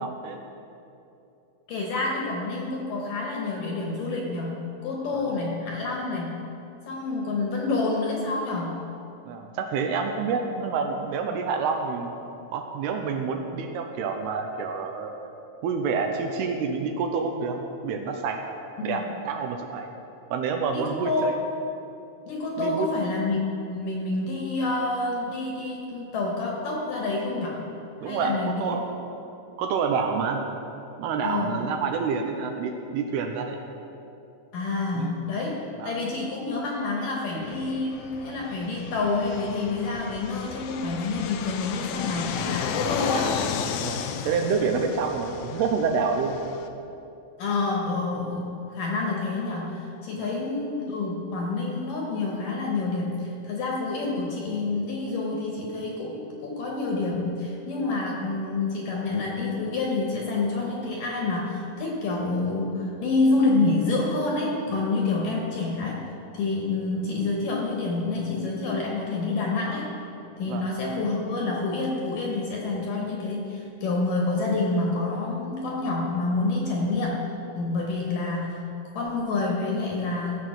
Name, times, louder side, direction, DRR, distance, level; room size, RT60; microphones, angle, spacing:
voice 1, 0.0-0.4 5.1-5.2 9.3-12.1 12.5-15.1 15.6-18.4 18.8-19.9 20.3-21.4 22.6-22.9 28.0-28.9 29.6-30.4 31.0-33.6 34.9-35.3 35.8-36.0 43.8-46.4 50.2-50.3 64.7-64.8 70.5-70.7, right 5 dB, 80° right, 4 dB, 2.6 m, -28 dB
voice 2, 1.7-6.4 6.9-8.8 18.8-19.0 20.7-21.3 22.3-23.4 23.7-27.6 28.0-28.6 31.2-31.6 34.5-35.6 35.8-43.4 47.4-66.0 66.3-69.9 70.4-77.2 77.5-78.6 78.9-80.4, left 3 dB, 65° left, -1 dB, 2.4 m, -28 dB
Fixed-wing aircraft airplane, 37.4-46.7, left 7 dB, 85° left, 2.0 m, -34 dB
15.0 x 7.2 x 6.1 m, 2.7 s
omnidirectional pair, 5.0 m